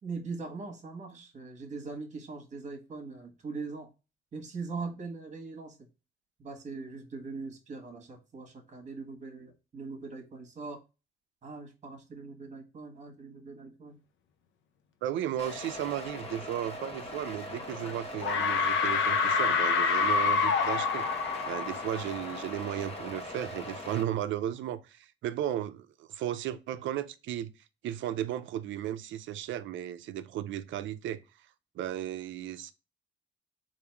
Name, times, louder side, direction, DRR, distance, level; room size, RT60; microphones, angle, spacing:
voice 1, 0.0-3.9 4.3-5.8 6.4-10.8 11.4-14.0, right 4 dB, 35° right, 1.2 m, -41 dB
voice 2, 15.0-21.0 21.5-27.5 27.8-31.2 31.8-32.7, right 11 dB, 75° right, 0.5 m, -35 dB
sound 1, 15.4-24.0, left 1 dB, 30° left, 0.9 m, -41 dB
sound 2, 17.6-17.9 18.2-22.8, left 5 dB, 70° left, 0.6 m, -27 dB
3.5 x 2.6 x 4.4 m
cardioid pair, 90°, 20 cm